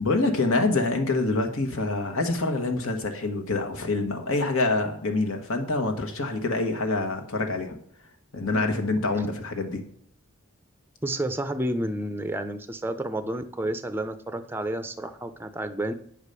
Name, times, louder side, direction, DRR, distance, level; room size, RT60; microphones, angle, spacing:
voice 1, 0.0-7.8 8.3-9.8, left 2 dB, 70° left, 4 dB, 1.5 m, -26 dB
voice 2, 11.0-15.9, right 1 dB, 10° right, 9 dB, 0.5 m, -30 dB
9.0 x 5.0 x 6.8 m, 0.65 s
head